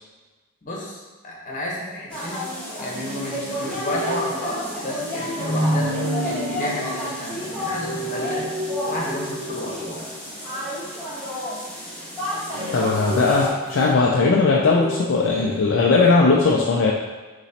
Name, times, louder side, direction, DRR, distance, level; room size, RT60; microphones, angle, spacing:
voice 1, 0.6-2.5 2.8-5.9 6.2-8.5 8.9-10.0, left 1 dB, 35° left, -4 dB, 1.0 m, -31 dB
sound 1, 2.1-13.5, left 1 dB, 5° left, 1.1 m, -31 dB
sound 2, 2.9-10.2 12.1-15.4, equal, 70° right, 1.3 m, -31 dB
voice 2, 12.7-16.9, left 3 dB, 55° left, -3 dB, 0.4 m, -18 dB
4.1 x 3.0 x 4.0 m, 1.3 s
head